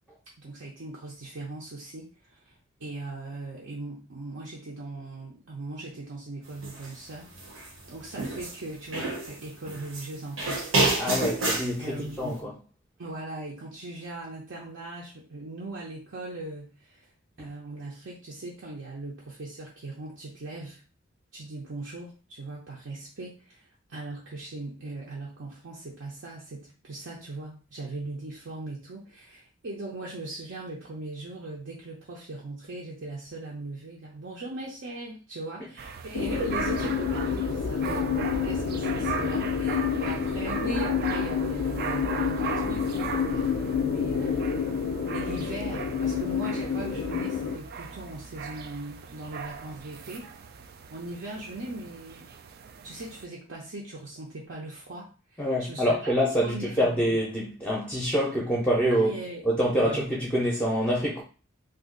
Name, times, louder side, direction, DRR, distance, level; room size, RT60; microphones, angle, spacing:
voice 1, 0.4-2.5 2.8-7.3 7.9-11.0 11.8-12.4 13.0-17.1 17.4-20.8 21.3-44.6 45.1-50.3 50.9-52.3 52.8-56.1 56.4-57.0 58.9-59.5 59.7-60.1, right 2 dB, 65° right, 0.7 m, -39 dB
sound 1, 6.6-6.9 7.3-8.6 8.9-10.1 10.4-11.7, right 2 dB, 80° right, 1.1 m, -28 dB
voice 2, 11.0-12.6 17.4-17.5 55.4-59.1 59.4-61.2, equal, 5° left, 0.6 m, -26 dB
sound 2, 35.8-53.2, right 5 dB, 50° right, 0.3 m, -38 dB
sound 3, 36.1-47.6, left 7 dB, 75° left, 0.4 m, -29 dB
2.7 x 2.4 x 3.7 m
head